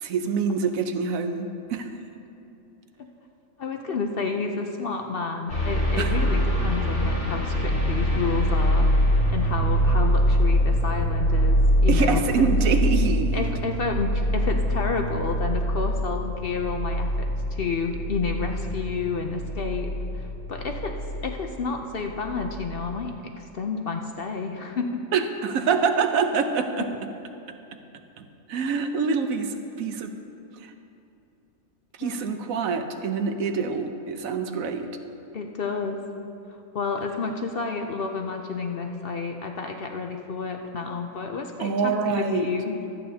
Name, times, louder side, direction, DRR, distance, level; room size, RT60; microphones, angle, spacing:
voice 1, 0.0-1.9 6.0-6.1 11.9-13.5 25.1-26.9 28.2-30.1 30.6-30.7 32.0-34.9 41.6-42.5, right 5 dB, 80° right, 7 dB, 1.1 m, -26 dB
voice 2, 3.6-12.5 13.3-20.9 21.2-25.0 26.9-27.0 32.0-32.3 35.3-36.0 36.7-42.8, left 4 dB, 55° left, 3 dB, 0.7 m, -30 dB
sound 1, 5.5-21.7 22.1-23.0, equal, 70° left, 2.5 m, -24 dB
24.0 x 8.6 x 2.8 m, 2.8 s
omnidirectional pair, 1.4 m